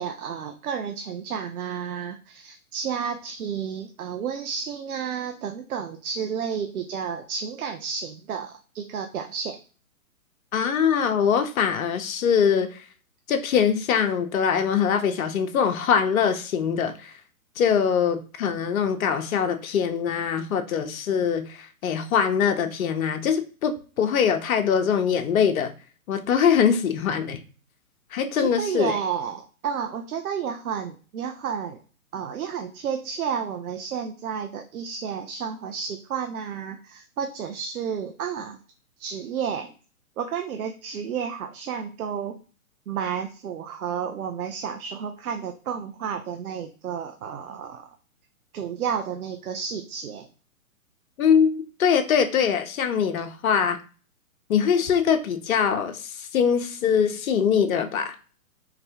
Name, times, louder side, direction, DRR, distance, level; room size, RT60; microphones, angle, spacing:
voice 1, 0.0-9.6 28.4-31.8 32.1-38.6 39.0-39.7 40.2-42.4 42.9-47.9 48.5-50.3, right 7 dB, 75° right, 5 dB, 0.6 m, -31 dB
voice 2, 10.5-12.9 13.3-17.2 17.6-25.7 26.1-27.4 28.1-29.0 51.2-53.8 54.5-58.2, left 7 dB, 70° left, 7 dB, 0.6 m, -23 dB
3.9 x 2.2 x 2.7 m, 0.37 s
hypercardioid pair, 135°, 44 cm